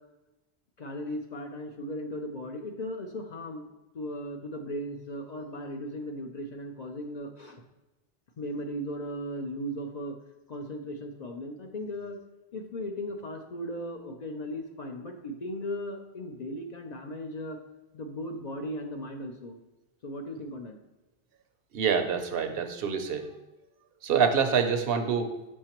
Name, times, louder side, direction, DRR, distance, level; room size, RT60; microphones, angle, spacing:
voice 1, 0.8-3.6 3.9-7.6 8.4-10.2 10.5-12.2 12.5-17.6 17.9-19.6 20.0-20.8, equal, 50° left, 3 dB, 0.6 m, -37 dB
voice 2, 21.7-23.3 24.0-25.3, right 6 dB, 70° right, 7 dB, 0.8 m, -26 dB
6.4 x 5.6 x 2.9 m, 1.0 s
omnidirectional pair, 1.0 m